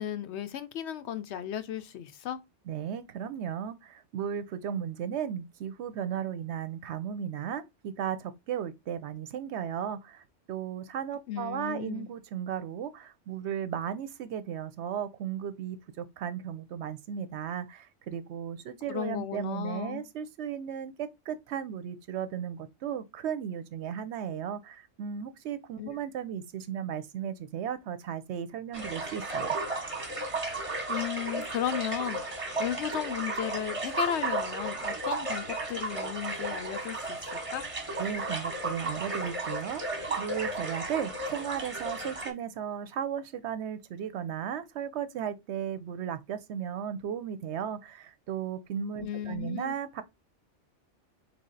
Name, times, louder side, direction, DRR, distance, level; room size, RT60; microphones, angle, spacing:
voice 1, 0.0-2.4 11.3-12.1 18.9-20.0 25.8-26.0 30.9-37.2 37.5-37.6 49.0-49.7, left 10 dB, 70° left, 0.8 m, -35 dB
voice 2, 2.7-29.6 38.0-50.0, right 8 dB, 70° right, 0.9 m, -35 dB
sound 1, 28.7-42.3, right 2 dB, 30° right, 1.0 m, -34 dB
4.2 x 3.3 x 3.8 m
omnidirectional pair, 1.2 m